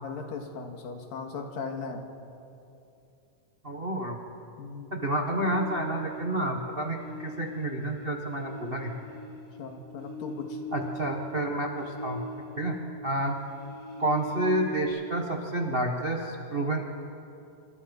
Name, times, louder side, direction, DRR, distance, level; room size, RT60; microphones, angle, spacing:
voice 1, 0.0-2.1 4.6-5.0 9.3-10.6, left 4 dB, 85° left, 3 dB, 3.7 m, -38 dB
voice 2, 3.6-4.2 4.9-9.0 10.7-12.8 13.0-13.4 14.0-16.8, right 1 dB, 50° right, 2 dB, 0.6 m, -29 dB
sound 1, 5.2-6.5 6.9-13.0 13.2-14.8, left 1 dB, 40° left, 4.8 m, -41 dB
26.5 x 26.5 x 5.5 m, 2.7 s
omnidirectional pair, 3.9 m